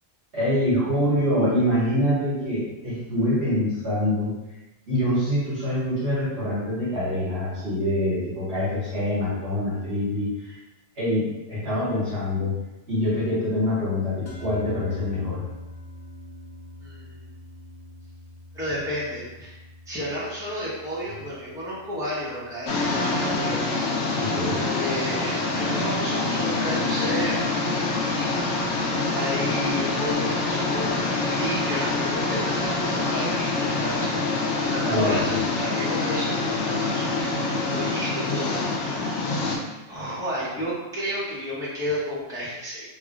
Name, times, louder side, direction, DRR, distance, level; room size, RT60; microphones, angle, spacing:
voice 1, 0.3-4.3 4.9-10.3 11.0-12.5 12.9-15.4 24.2-24.6 34.8-35.3, left 1 dB, 70° right, -9 dB, 1.8 m, -25 dB
sound 1, 14.3-24.7, left 1 dB, 60° left, 1.1 m, -44 dB
voice 2, 16.8-17.2 18.5-28.9 29.1-34.1 34.6-39.3 39.9-42.9, equal, 5° right, -9 dB, 1.0 m, -32 dB
sound 2, 22.7-39.6, left 3 dB, 80° left, 0.9 m, -26 dB
3.4 x 2.4 x 3.7 m, 1.0 s
omnidirectional pair, 1.2 m